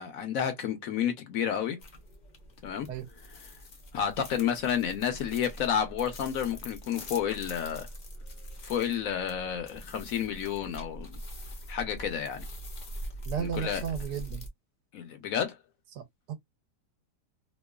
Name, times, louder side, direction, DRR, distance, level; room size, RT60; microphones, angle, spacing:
voice 1, 0.0-1.8 2.6-2.9 3.9-7.9 8.6-11.2 11.7-12.4 13.4-13.8 14.9-15.6, left 8 dB, 65° left, 0.9 m, -30 dB
sound 1, 1.8-14.5, equal, 50° left, 0.5 m, -43 dB
voice 2, 13.3-14.4 15.9-16.3, right 8 dB, 75° right, 1.1 m, -34 dB
3.0 x 2.2 x 2.2 m
omnidirectional pair, 1.8 m